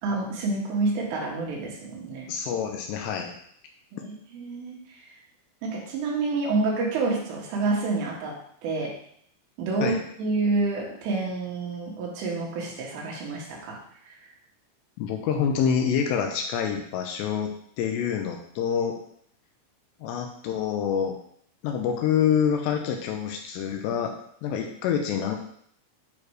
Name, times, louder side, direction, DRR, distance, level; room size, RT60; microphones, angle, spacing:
voice 1, 0.0-2.3 3.9-4.8 5.6-8.9 9.6-13.8, right 3 dB, 85° right, -2 dB, 4.1 m, -28 dB
voice 2, 2.3-3.3 9.8-10.0 15.0-17.5 17.8-18.9 20.0-21.2 21.6-24.1 24.4-25.4, left 7 dB, 80° left, 3 dB, 2.5 m, -26 dB
9.5 x 3.2 x 4.8 m, 0.66 s
omnidirectional pair, 5.5 m